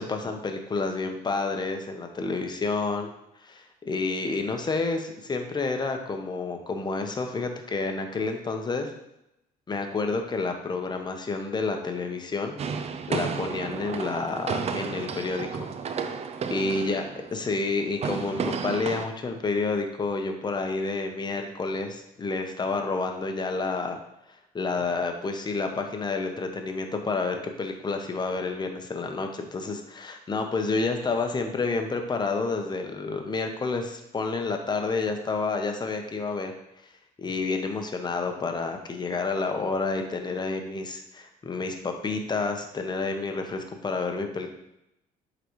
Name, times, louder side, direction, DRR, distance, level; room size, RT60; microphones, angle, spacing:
voice 1, 0.0-3.1 3.4-8.9 9.7-15.7 16.5-17.0 17.3-24.0 24.5-36.5 37.2-44.5, left 3 dB, 25° left, 5 dB, 0.8 m, -29 dB
sound 1, 12.6-19.1, right 6 dB, 40° right, 0.5 m, -32 dB
8.1 x 3.9 x 3.1 m, 0.85 s
cardioid pair, 110°, 17 cm